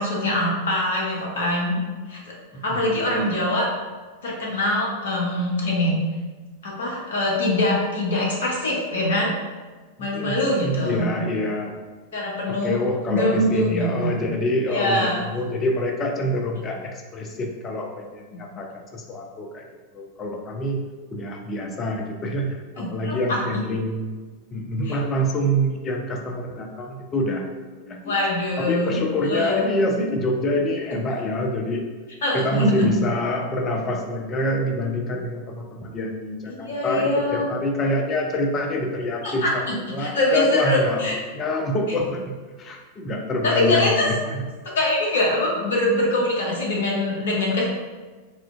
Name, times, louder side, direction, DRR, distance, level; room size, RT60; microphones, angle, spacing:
voice 1, 0.0-1.8 2.1-2.2 2.6-3.7 4.2-6.0 6.6-9.3 10.0-11.1 12.1-12.8 13.0-14.1 14.6-15.2 18.3-18.4 22.8-23.4 24.8-25.0 28.0-29.7 32.2-32.9 36.5-37.5 39.2-41.1 43.4-44.1 44.6-47.6, left 1 dB, 60° left, -3 dB, 0.8 m, -23 dB
voice 2, 10.0-11.7 12.5-19.6 19.9-20.8 21.1-24.2 24.5-27.4 27.8-28.1 28.6-31.8 32.3-39.6 39.9-44.2, left 1 dB, 25° left, 2 dB, 0.4 m, -26 dB
4.2 x 2.4 x 2.4 m, 1.4 s
figure-of-eight pair, 90°, 0 cm